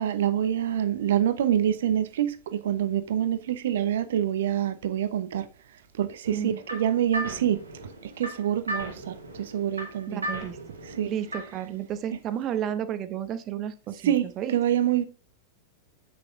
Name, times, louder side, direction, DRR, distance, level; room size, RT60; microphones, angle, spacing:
voice 1, 0.0-5.4 6.0-7.6 8.2-9.1 9.5-10.3 11.0-11.1 14.0-15.0, right 10 dB, 60° right, 0.9 m, -26 dB
sound 1, 6.2-11.7, equal, 80° right, 2.2 m, -37 dB
voice 2, 10.1-10.6 11.0-14.5, right 9 dB, 35° right, 1.0 m, -32 dB
8.2 x 6.6 x 3.7 m
figure-of-eight pair, 90°, 0 cm